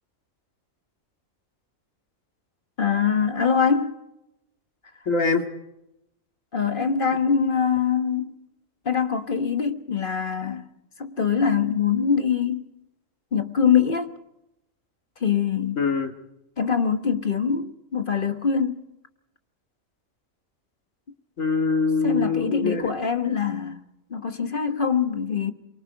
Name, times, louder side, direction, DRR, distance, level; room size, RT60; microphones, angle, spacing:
voice 1, 2.8-4.0 6.5-8.4 8.8-10.7 11.0-12.7 13.3-14.1 15.2-15.8 16.6-18.9 22.0-25.5, left 6 dB, 40° left, 1.5 m, -23 dB
voice 2, 5.1-5.4 15.8-16.1 21.4-22.9, left 4 dB, 75° left, 2.5 m, -23 dB
23.5 x 23.5 x 5.2 m
omnidirectional pair, 1.4 m